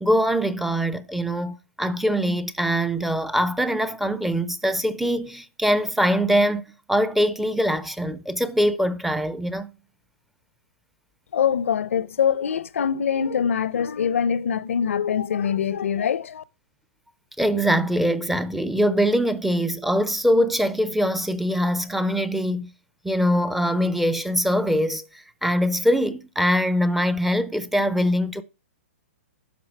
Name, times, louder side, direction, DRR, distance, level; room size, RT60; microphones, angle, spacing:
voice 1, 0.0-9.7 17.4-22.7 23.0-25.0 25.4-28.4, equal, ahead, 0.5 m, -23 dB
voice 2, 11.3-16.4, left 7 dB, 80° left, 0.7 m, -23 dB
11.0 x 5.8 x 4.5 m
hypercardioid pair, 140°, 7 cm